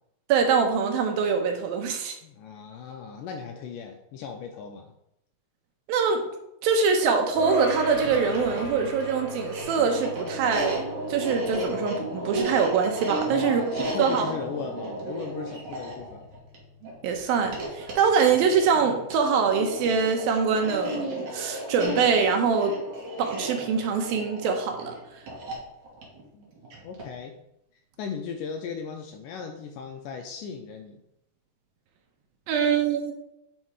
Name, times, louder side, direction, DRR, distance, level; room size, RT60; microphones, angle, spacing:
voice 1, 0.3-2.2 5.9-6.2 6.6-13.6 14.0-14.3 17.0-21.1 21.3-22.8 23.2-25.0 32.5-33.1, right 5 dB, 75° right, 4 dB, 2.7 m, -24 dB
voice 2, 2.2-4.9 13.3-16.3 26.3-26.5 26.8-27.3 28.0-31.0, left 6 dB, 80° left, 3 dB, 2.0 m, -36 dB
sound 1, 7.3-17.0, right 1 dB, 10° right, 2.7 m, -39 dB
sound 2, 8.0-27.2, right 1 dB, 55° right, 3.0 m, -34 dB
9.4 x 4.5 x 4.8 m, 0.80 s
omnidirectional pair, 4.4 m